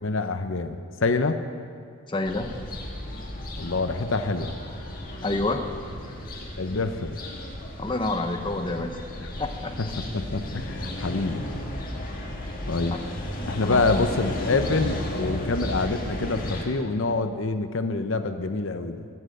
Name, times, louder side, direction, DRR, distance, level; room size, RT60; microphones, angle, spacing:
voice 1, 0.0-1.4 3.6-4.5 6.6-7.2 9.2-9.3 9.8-11.4 12.7-13.0 13.4-19.1, left 3 dB, 60° left, 8 dB, 0.7 m, -26 dB
voice 2, 2.1-2.5 5.2-5.7 7.8-9.0 9.4-9.7 13.6-14.1, left 2 dB, 20° left, 5 dB, 0.7 m, -28 dB
sound 1, 2.3-16.6, left 1 dB, 40° left, 2.0 m, -34 dB
sound 2, 9.3-14.8, equal, 25° right, 3.4 m, -49 dB
18.5 x 7.6 x 7.8 m, 2.2 s
head